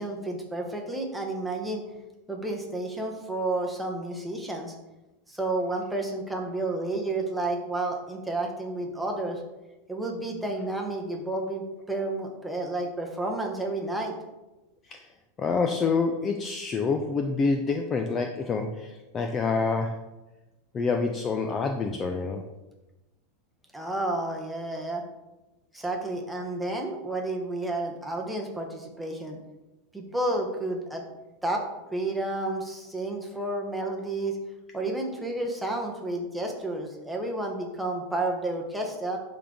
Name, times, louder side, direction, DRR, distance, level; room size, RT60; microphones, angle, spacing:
voice 1, 0.0-1.8 2.3-4.7 5.3-9.4 9.9-14.2 23.7-25.0 25.7-29.4 29.9-31.0 31.4-31.6 31.9-34.4 34.7-39.2, right 2 dB, 5° right, 0 dB, 0.9 m, -31 dB
voice 2, 15.4-20.0 20.7-22.4, left 4 dB, 20° left, 4 dB, 0.4 m, -27 dB
11.5 x 3.8 x 3.6 m, 1.0 s
supercardioid pair, 160°, 0 cm